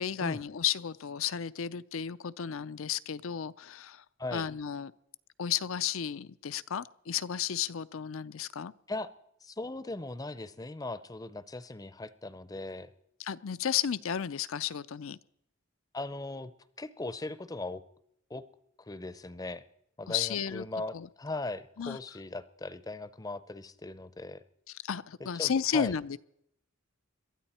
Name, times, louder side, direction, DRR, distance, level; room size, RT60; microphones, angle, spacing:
voice 1, 0.0-4.0 4.3-4.9 5.4-8.7 13.2-15.2 20.1-20.7 20.9-21.1 21.8-22.0 24.7-26.2, left 8 dB, 75° left, 16 dB, 0.5 m, -33 dB
voice 2, 9.4-12.9 15.9-16.5 16.8-17.8 18.3-18.5 18.9-19.6 20.0-24.4 25.2-25.9, left 2 dB, 15° left, 15 dB, 0.6 m, -39 dB
22.5 x 13.0 x 4.3 m, 0.74 s
head